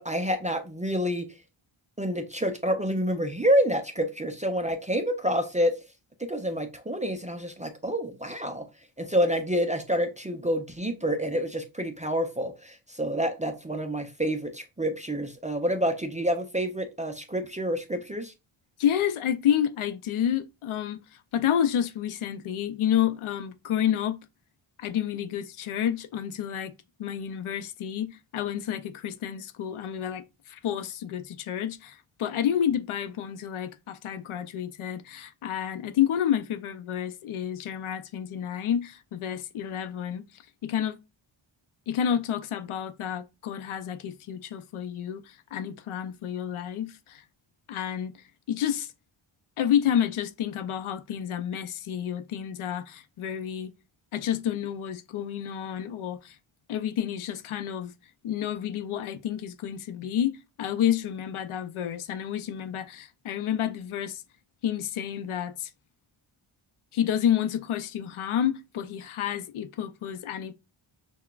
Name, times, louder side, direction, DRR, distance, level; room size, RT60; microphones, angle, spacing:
voice 1, 0.0-1.3 2.0-5.8 6.2-8.6 9.0-18.3, equal, 15° right, 0.3 m, -28 dB
voice 2, 18.8-24.2 24.8-26.7 27.0-40.2 40.6-41.0 41.9-47.2 47.7-48.9 49.6-53.7 54.1-56.4 56.7-57.9 58.2-64.2 64.6-65.7 66.9-70.5, left 9 dB, 75° left, 0.5 m, -29 dB
5.7 x 2.2 x 2.3 m
wide cardioid pair, 125°, 50 cm